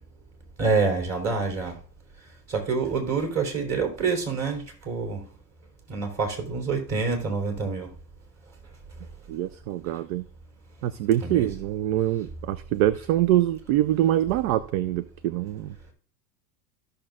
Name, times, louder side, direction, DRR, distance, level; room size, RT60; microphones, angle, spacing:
voice 1, 0.6-1.8 2.5-5.2 5.9-7.9 11.2-11.5, right 4 dB, 30° right, 3 dB, 3.6 m, -27 dB
voice 2, 9.3-10.3 10.8-15.7, right 13 dB, 60° right, 16 dB, 0.6 m, -24 dB
14.0 x 6.6 x 2.4 m, 0.41 s
hypercardioid pair, 105°, 50 cm